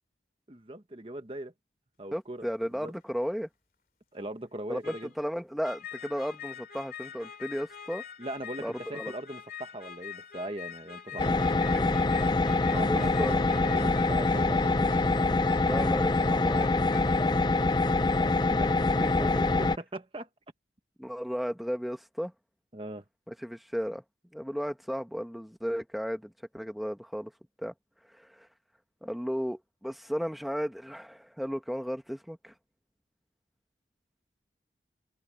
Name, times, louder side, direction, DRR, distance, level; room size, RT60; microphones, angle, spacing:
voice 1, 0.5-1.5 2.0-2.5 2.8-2.9 4.1-5.1 8.2-11.7 12.4-13.4 13.6-15.2 17.6-18.8 19.6-20.3 22.7-23.0, right 1 dB, 30° right, 1.2 m, -40 dB
voice 2, 2.1-3.5 4.7-8.0 8.6-9.1 11.7-11.9 12.8-13.4 15.5-17.1 19.0-19.5 21.0-22.3 23.3-24.0 24.3-27.3 27.6-27.7 28.1-28.5 29.0-32.5, equal, ahead, 1.5 m, -34 dB
sound 1, 3.0-3.1 4.8-5.2 5.6-17.3, left 7 dB, 55° left, 2.8 m, -44 dB
sound 2, 11.2-19.8, left 3 dB, 25° left, 0.5 m, -25 dB
head